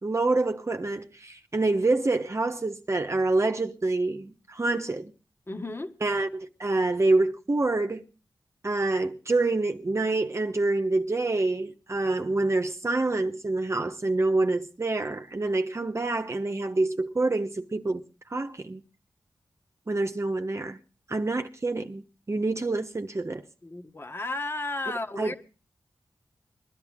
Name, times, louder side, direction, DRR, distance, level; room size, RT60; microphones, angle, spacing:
voice 1, 0.0-5.1 6.0-8.1 8.6-18.0 18.3-18.8 19.9-20.8 21.1-23.4 25.2-25.4, right 2 dB, 40° right, 1.2 m, -27 dB
voice 2, 5.5-5.9 23.6-25.4, left 2 dB, 30° left, 1.7 m, -33 dB
21.5 x 11.5 x 3.6 m
wide cardioid pair, 65°, 8 cm